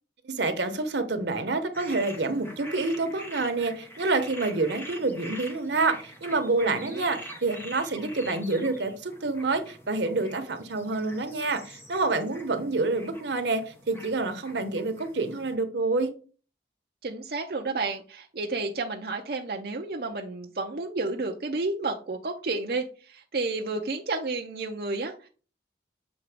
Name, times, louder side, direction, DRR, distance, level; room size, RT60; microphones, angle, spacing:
voice 1, 0.2-16.1, right 3 dB, 85° right, 8 dB, 1.0 m, -28 dB
sound 1, 1.7-15.5, equal, 15° left, 1.0 m, -45 dB
voice 2, 6.6-7.1 17.0-25.3, right 3 dB, 60° right, 2 dB, 0.5 m, -31 dB
7.1 x 2.9 x 4.9 m, 0.37 s
head